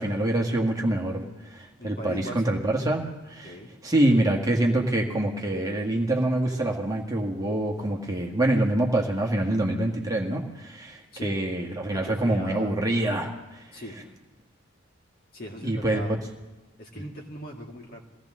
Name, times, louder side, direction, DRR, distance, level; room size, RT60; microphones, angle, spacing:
voice 1, 0.0-3.6 3.8-13.8 15.6-16.1, right 1 dB, 15° right, 0 dB, 1.6 m, -26 dB
voice 2, 1.8-2.6 3.4-3.7 11.1-11.4 11.9-12.7 13.7-14.0 15.3-16.2 16.8-18.0, equal, 45° left, 0 dB, 2.4 m, -39 dB
22.5 x 16.5 x 3.8 m, 1.1 s
head